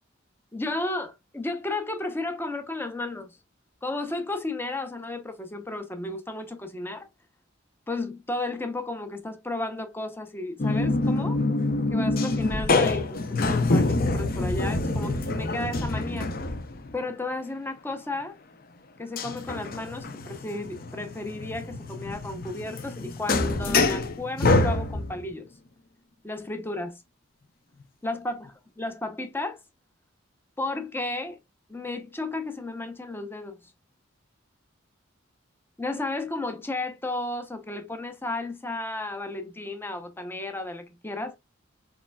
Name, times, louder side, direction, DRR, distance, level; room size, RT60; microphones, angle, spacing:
voice 1, 0.5-3.3 3.8-7.1 7.9-11.4 11.9-16.3 16.9-18.4 19.0-25.5 26.2-26.9 28.0-28.5 28.8-29.6 30.6-31.4 31.7-33.6 35.8-41.4, left 2 dB, 10° left, 0.7 m, -33 dB
sound 1, 10.6-17.0 19.2-25.3, left 2 dB, 45° left, 0.7 m, -26 dB
4.8 x 4.2 x 2.2 m
head